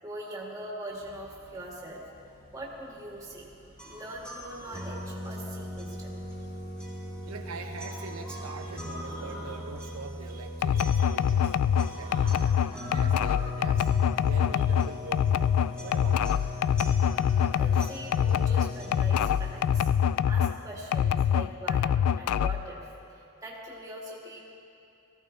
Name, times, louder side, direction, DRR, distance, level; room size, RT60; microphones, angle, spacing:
voice 1, 0.0-3.5 3.8-6.2 17.4-19.9 20.3-24.4, right 1 dB, 15° right, -4 dB, 2.0 m, -42 dB
sound 1, 0.9-18.5, equal, 50° left, 3.3 m, -53 dB
sound 2, 3.8-19.8, left 1 dB, 5° left, 2.4 m, -39 dB
voice 2, 7.3-12.6 12.9-13.9 14.2-16.4, right 4 dB, 85° right, 5 dB, 0.8 m, -43 dB
sound 3, 10.6-20.6 20.9-22.7, left 8 dB, 90° left, 0.3 m, -25 dB
18.5 x 15.0 x 3.3 m, 2.7 s
head